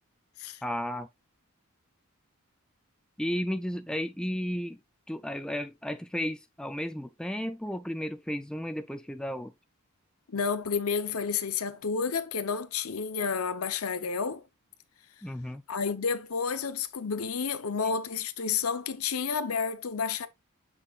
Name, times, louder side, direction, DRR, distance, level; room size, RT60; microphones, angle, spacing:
voice 1, 0.6-1.1 3.2-4.8 5.1-9.5 15.2-15.6, equal, 5° left, 0.3 m, -33 dB
voice 2, 10.3-14.4 15.7-20.3, left 5 dB, 75° left, 0.8 m, -30 dB
8.1 x 5.4 x 2.4 m
head